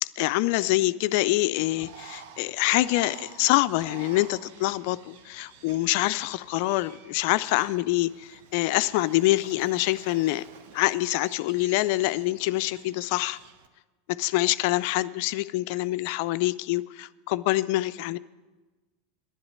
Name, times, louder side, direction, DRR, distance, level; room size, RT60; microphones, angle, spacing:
voice 1, 0.0-10.4 10.7-13.4 14.2-18.2, left 18 dB, 60° left, 15 dB, 0.3 m, -25 dB
Bird, 1.7-13.7, right 7 dB, 65° right, 0.9 m, -50 dB
11.0 x 7.8 x 9.5 m, 1.3 s
hypercardioid pair, 85°, 0 cm